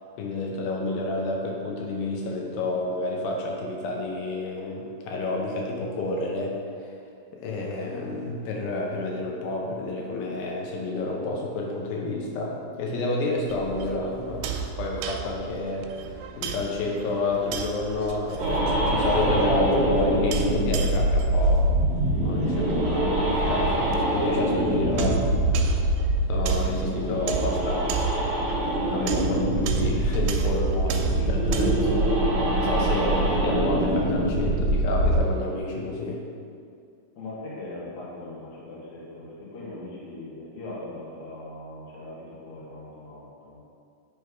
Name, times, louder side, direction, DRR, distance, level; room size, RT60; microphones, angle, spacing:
voice 1, 0.2-6.5 6.8-6.9 7.4-14.5 14.8-21.6 22.2-25.3 26.3-27.8 28.1-28.6 28.9-31.9 32.5-36.2, left 2 dB, 75° left, -1 dB, 2.5 m, -30 dB
sound 1, 13.5-32.0, right 7 dB, 85° right, 2.5 m, -34 dB
sound 2, 18.4-35.2, right 1 dB, 50° right, 2.4 m, -24 dB
voice 2, 37.2-43.6, left 2 dB, 60° left, -6 dB, 2.5 m, -40 dB
8.2 x 3.4 x 4.6 m, 2.3 s
omnidirectional pair, 4.5 m